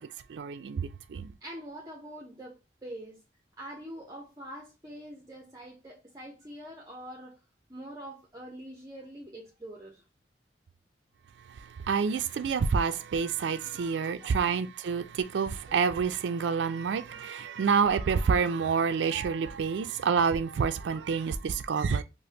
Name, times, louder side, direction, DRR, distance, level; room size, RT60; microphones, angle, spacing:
voice 1, 0.3-1.3 11.6-22.0, right 6 dB, 90° right, 0.4 m, -28 dB
voice 2, 1.4-2.5 2.8-3.2 3.6-7.4 7.7-10.0 13.6-14.6 15.7-15.8 16.9-17.2 21.2-21.3, right 1 dB, 20° right, 0.6 m, -45 dB
5.0 x 2.1 x 2.7 m
head